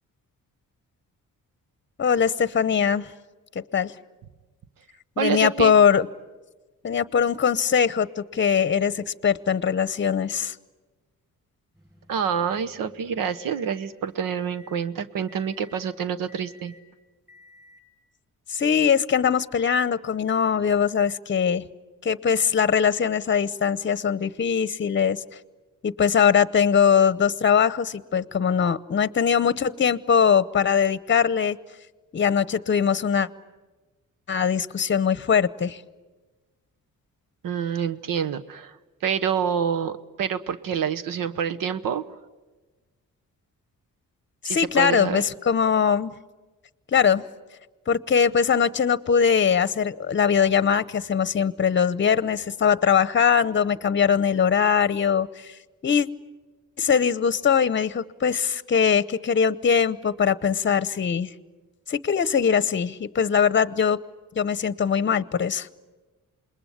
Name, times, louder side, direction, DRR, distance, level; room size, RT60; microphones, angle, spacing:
voice 1, 2.0-3.1 3.5-3.9 5.2-6.1 6.8-10.5 18.5-21.6 22.0-25.2 25.8-31.6 32.1-33.3 34.3-35.8 44.4-46.1 46.9-47.2 47.9-55.5 55.8-56.1 56.8-61.3 61.9-64.0 64.3-65.7, left 7 dB, 35° left, 18 dB, 0.8 m, -21 dB
voice 2, 5.2-5.7 12.1-16.7 37.4-42.0 44.4-45.2, right 7 dB, 85° right, 12 dB, 1.1 m, -27 dB
sound 1, 11.7-13.8 14.3-14.8 15.3-15.8 16.3-16.8 17.3-17.8, left 2 dB, 10° right, 6.6 m, -54 dB
27.5 x 21.0 x 10.0 m, 1.2 s
cardioid pair, 95°, 32 cm